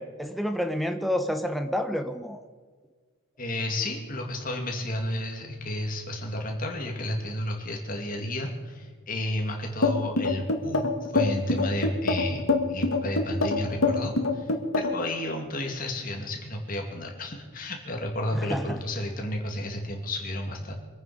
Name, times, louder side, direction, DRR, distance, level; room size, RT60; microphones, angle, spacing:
voice 1, 0.0-2.4 18.3-18.8, equal, ahead, 6 dB, 0.9 m, -29 dB
voice 2, 3.4-12.4 12.7-14.5 14.8-20.7, left 1 dB, 45° left, 2 dB, 2.5 m, -32 dB
sound 1, 9.8-15.1, left 3 dB, 85° left, 1.8 m, -24 dB
24.5 x 9.2 x 5.1 m, 1.5 s
head